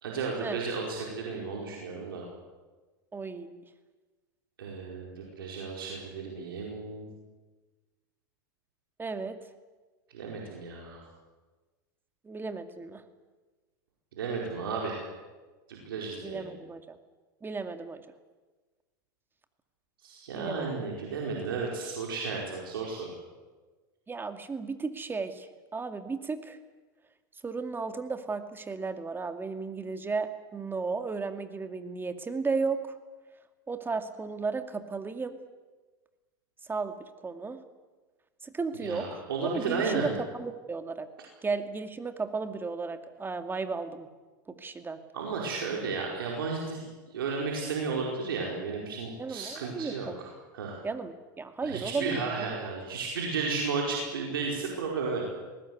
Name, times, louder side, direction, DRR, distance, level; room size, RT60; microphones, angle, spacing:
voice 1, 0.0-2.3 4.6-7.1 10.1-11.0 14.2-15.0 15.7-16.4 20.0-23.2 38.7-40.1 45.1-46.8 47.1-50.3 50.5-50.8 51.6-55.3, right 4 dB, 85° right, -2 dB, 4.9 m, -33 dB
voice 2, 3.1-3.6 9.0-9.4 12.2-13.0 16.2-17.0 17.4-18.0 20.3-20.8 24.1-26.6 27.4-33.0 33.7-35.4 36.7-36.9 37.2-37.6 38.4-41.1 41.4-44.1 44.5-45.0 49.2-50.2 50.8-52.5, right 4 dB, 20° right, 8 dB, 2.3 m, -34 dB
20.5 x 18.5 x 9.6 m, 1.3 s
hypercardioid pair, 100°, 12 cm